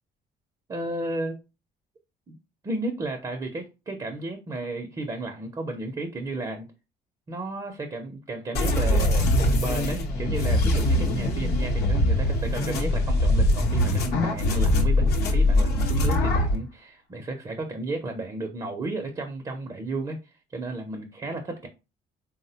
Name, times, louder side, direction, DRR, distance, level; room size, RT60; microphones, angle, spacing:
voice 1, 0.7-1.4 2.3-2.4 2.6-6.7 7.3-21.7, right 2 dB, 25° right, 0.4 m, -33 dB
sound 1, 8.5-16.6, left 1 dB, 75° left, 0.8 m, -22 dB
3.4 x 2.0 x 2.7 m
cardioid pair, 110°, 17 cm